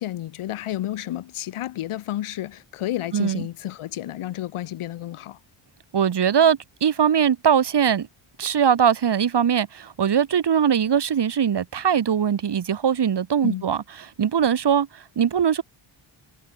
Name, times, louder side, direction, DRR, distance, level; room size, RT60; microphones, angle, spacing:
voice 1, 0.0-5.4 13.4-13.7, left 13 dB, 85° left, 3.0 m, -31 dB
voice 2, 3.1-3.4 5.9-8.1 8.4-13.8 14.2-15.6, right 8 dB, 55° right, 5.0 m, -21 dB
cardioid pair, 95°, 49 cm